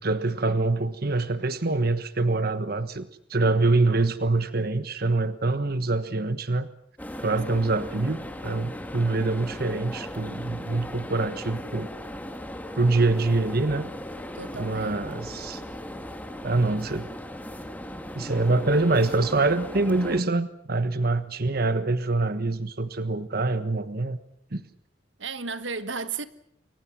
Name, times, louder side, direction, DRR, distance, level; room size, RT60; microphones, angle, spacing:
voice 1, 0.0-6.7 7.2-11.9 12.7-13.9 14.5-15.6 16.4-17.1 18.1-24.2 24.5-24.6, right 3 dB, 55° right, 1.3 m, -25 dB
sound 1, 7.0-20.2, left 1 dB, 10° left, 2.2 m, -38 dB
voice 2, 14.3-15.3 25.2-26.3, right 4 dB, 80° right, 1.4 m, -34 dB
29.5 x 23.0 x 6.2 m
head